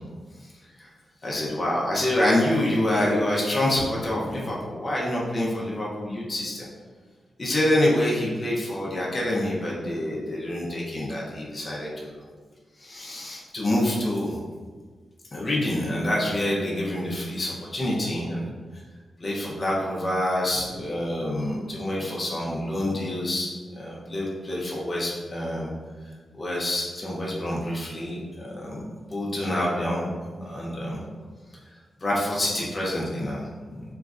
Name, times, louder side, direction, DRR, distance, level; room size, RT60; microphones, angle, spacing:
voice 1, 1.2-6.7 7.4-12.2 12.8-14.4 15.3-18.5 19.2-23.5 23.8-25.7 26.4-28.8 29.1-30.1 30.4-31.0 32.0-33.5, left 1 dB, 25° left, -5 dB, 0.5 m, -27 dB
3.0 x 2.4 x 2.4 m, 1.5 s
wide cardioid pair, 165°, 0 cm